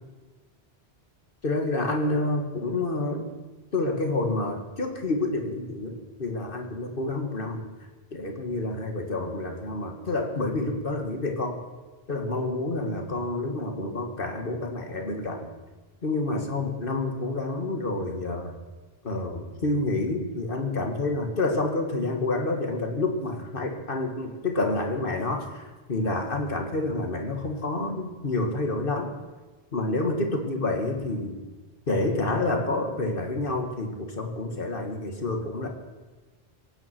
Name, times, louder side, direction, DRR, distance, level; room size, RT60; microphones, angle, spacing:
voice 1, 1.4-3.3 3.7-7.6 8.1-11.6 12.1-15.5 16.0-18.5 19.0-29.1 29.7-31.4 31.9-35.7, left 2 dB, 60° left, 3 dB, 2.2 m, -28 dB
23.5 x 9.7 x 6.1 m, 1.3 s
omnidirectional pair, 1.1 m